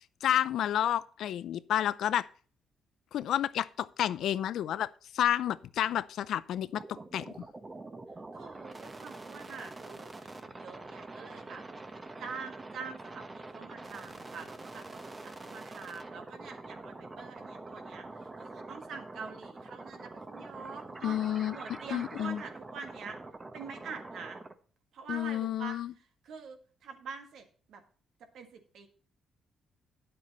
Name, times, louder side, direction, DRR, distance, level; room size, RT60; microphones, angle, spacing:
voice 1, 0.2-2.2 3.1-4.9 5.1-6.8 7.1-7.3 21.0-21.6 21.9-22.4 25.1-25.9, left 11 dB, 75° left, 0.5 m, -30 dB
sound 1, 6.8-24.5, right 2 dB, 25° right, 1.0 m, -45 dB
voice 2, 8.3-11.6 12.2-21.2 21.5-23.2 23.5-24.4 24.9-27.8 28.3-28.9, right 5 dB, 75° right, 1.7 m, -45 dB
9.8 x 7.6 x 4.1 m
cardioid pair, 90°, 0 cm